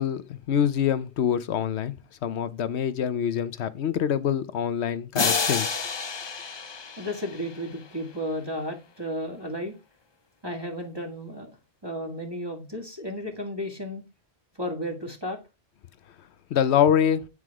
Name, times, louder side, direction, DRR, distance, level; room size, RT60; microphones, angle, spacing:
voice 1, 0.0-1.9 2.2-5.7 16.5-17.2, left 9 dB, 80° left, 1.0 m, -25 dB
sound 1, 5.2-8.0, left 5 dB, 35° left, 0.5 m, -29 dB
voice 2, 7.0-9.7 10.4-11.6 11.8-14.0 14.6-15.4, equal, 20° right, 2.1 m, -33 dB
9.4 x 4.9 x 4.8 m
omnidirectional pair, 1.1 m